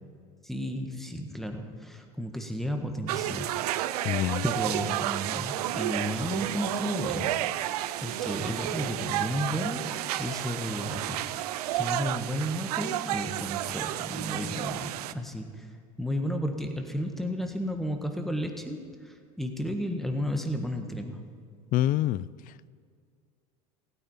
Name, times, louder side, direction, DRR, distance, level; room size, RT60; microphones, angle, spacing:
voice 1, 0.4-3.5 3.9-4.0 4.4-7.3 7.8-9.9 10.2-11.2 11.8-15.7 16.0-21.2, equal, ahead, 4 dB, 1.6 m, -33 dB
sound 1, 3.1-15.1, right 13 dB, 85° right, 0.5 m, -31 dB
voice 2, 4.0-4.4 21.7-22.3, left 13 dB, 45° left, 20 dB, 0.4 m, -25 dB
15.5 x 9.7 x 7.1 m, 2.2 s
supercardioid pair, 95°, 19 cm